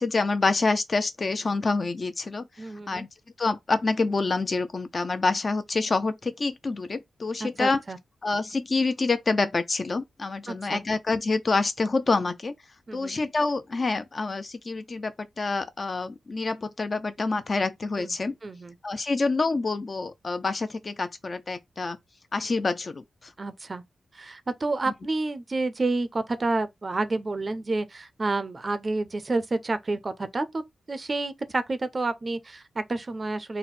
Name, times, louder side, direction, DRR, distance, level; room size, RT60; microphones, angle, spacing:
voice 1, 0.0-3.1 3.4-7.8 8.2-12.5 12.9-18.3 18.8-22.0 22.3-23.3, left 3 dB, 35° left, 0.4 m, -27 dB
voice 2, 2.6-3.1 7.4-8.0 10.5-10.8 12.9-13.2 18.0-18.1 18.4-18.8 23.4-23.8 24.1-30.6 30.9-33.6, right 2 dB, 30° right, 0.4 m, -29 dB
4.1 x 2.1 x 4.2 m
wide cardioid pair, 145°, 0 cm